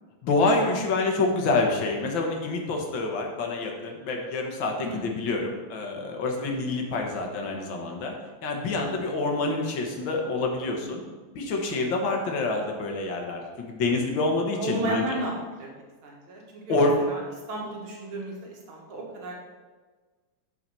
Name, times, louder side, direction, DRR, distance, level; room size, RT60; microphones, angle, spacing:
voice 1, 0.2-8.1 8.4-11.0 11.4-15.2 16.7-16.9, left 3 dB, 70° left, 1 dB, 2.1 m, -27 dB
voice 2, 14.6-15.3 15.6-15.7 16.0-16.8 17.1-17.2 17.5-19.3, right 1 dB, 90° right, -1 dB, 2.6 m, -33 dB
8.9 x 6.0 x 5.5 m, 1.4 s
omnidirectional pair, 2.2 m